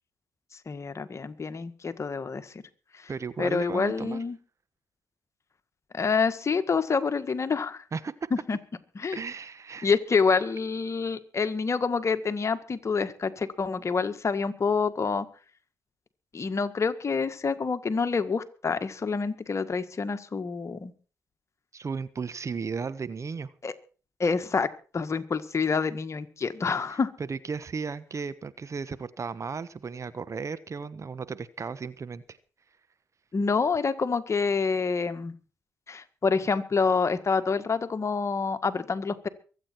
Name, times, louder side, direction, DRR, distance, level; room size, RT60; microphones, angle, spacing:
voice 1, 0.7-2.6 2.9-3.1 3.4-4.4 5.9-7.8 8.3-8.6 9.0-9.2 9.8-15.3 16.3-20.9 23.6-23.7 24.2-24.7 24.9-27.1 33.3-35.4 35.9-39.3, left 5 dB, 45° left, 1.7 m, -27 dB
voice 2, 3.1-4.2 7.9-8.1 9.1-9.9 21.7-23.5 27.3-32.4, right 5 dB, 45° right, 1.1 m, -35 dB
23.5 x 8.7 x 4.6 m
hypercardioid pair, 45°, 7 cm